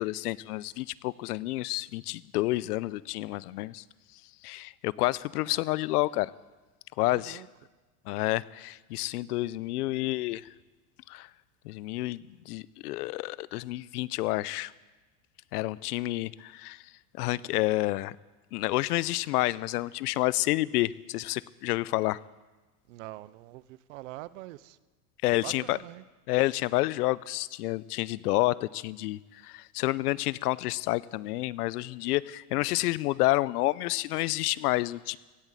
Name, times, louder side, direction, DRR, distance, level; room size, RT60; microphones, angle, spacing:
voice 1, 0.0-3.8 4.4-6.3 7.0-7.4 8.1-10.5 11.1-11.3 11.6-14.7 15.5-16.8 17.2-18.1 18.5-22.2 25.2-25.8 26.3-35.2, left 18 dB, 80° left, 0.6 m, -29 dB
voice 2, 7.1-7.5 22.9-24.8 25.4-26.0, right 17 dB, 55° right, 0.6 m, -43 dB
16.5 x 7.3 x 8.5 m
supercardioid pair, 165°, 45 cm